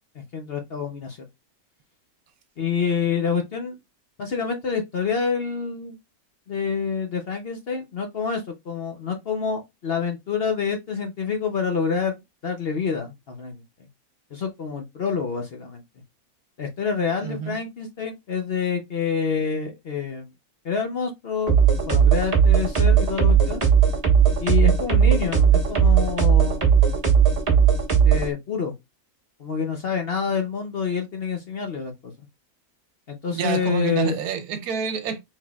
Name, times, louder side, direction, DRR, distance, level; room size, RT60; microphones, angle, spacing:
voice 1, 0.3-1.2 2.6-3.8 4.2-6.0 6.5-13.6 14.3-15.8 16.6-20.3 20.6-21.6 21.8-23.6 24.4-26.7 28.0-28.7 29.4-32.1 33.1-34.1, left 6 dB, 55° left, 0.7 m, -27 dB
voice 2, 17.2-17.6 33.3-35.2, right 7 dB, 75° right, 1.2 m, -27 dB
sound 1, 21.5-28.3, right 7 dB, 25° right, 1.3 m, -17 dB
4.5 x 3.9 x 2.3 m
omnidirectional pair, 1.6 m